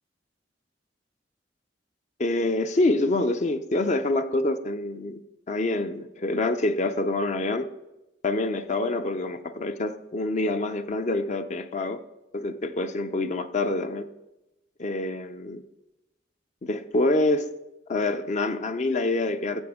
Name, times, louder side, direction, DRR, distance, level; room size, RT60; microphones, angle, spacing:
voice 1, 2.2-5.2 5.5-7.7 8.2-12.0 12.3-14.1 14.8-15.6 16.6-17.5 17.9-19.6, left 2 dB, 40° left, 9 dB, 0.5 m, -26 dB
12.5 x 7.8 x 3.6 m, 0.95 s
head